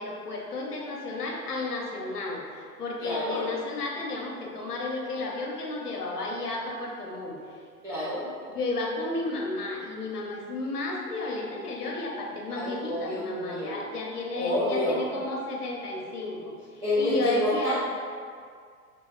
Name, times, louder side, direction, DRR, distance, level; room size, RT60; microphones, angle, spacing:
voice 1, 0.0-7.4 8.5-17.7, left 2 dB, 80° left, -1 dB, 0.8 m, -33 dB
voice 2, 3.0-3.4 7.8-8.3 12.5-13.8 14.3-15.0 16.8-17.7, left 1 dB, 10° right, -13 dB, 0.4 m, -28 dB
3.0 x 2.8 x 3.5 m, 2.1 s
figure-of-eight pair, 100°, 46 cm